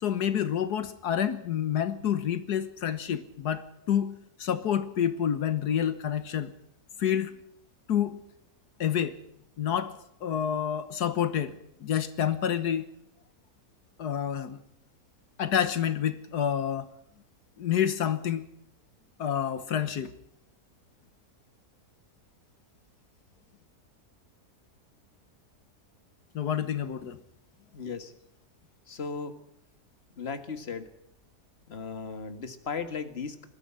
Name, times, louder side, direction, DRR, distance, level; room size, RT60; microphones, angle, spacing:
voice 1, 0.0-6.5 7.0-7.4 7.9-8.2 8.8-9.2 9.6-12.9 14.0-14.6 15.4-16.9 17.6-18.5 19.2-20.1 26.4-27.2, left 9 dB, 80° left, 11 dB, 1.7 m, -28 dB
voice 2, 27.7-28.1 28.9-29.4 30.2-30.9 31.7-33.5, left 5 dB, 40° left, 9 dB, 1.9 m, -36 dB
21.0 x 14.0 x 9.8 m, 0.74 s
omnidirectional pair, 1.7 m